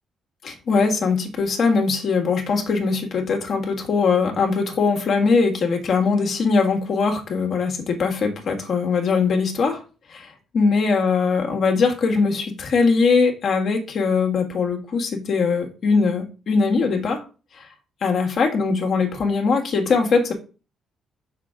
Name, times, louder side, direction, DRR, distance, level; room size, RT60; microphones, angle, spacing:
voice 1, 0.4-9.8 10.1-17.2 17.6-17.7 18.0-20.3, left 4 dB, 60° left, 2 dB, 1.7 m, -21 dB
6.0 x 5.9 x 3.7 m, 0.33 s
cardioid pair, 90°, 0 cm